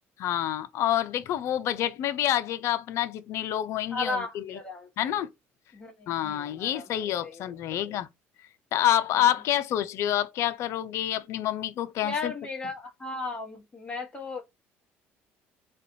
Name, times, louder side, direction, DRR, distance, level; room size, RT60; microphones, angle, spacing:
voice 1, 0.2-4.6 5.0-5.3 6.1-8.1 8.7-12.3, left 12 dB, 65° left, 0.5 m, -28 dB
voice 2, 3.9-5.1 5.7-7.8 12.0-14.4, left 3 dB, 25° left, 1.5 m, -36 dB
3.3 x 2.4 x 2.6 m
supercardioid pair, 95°, 5 cm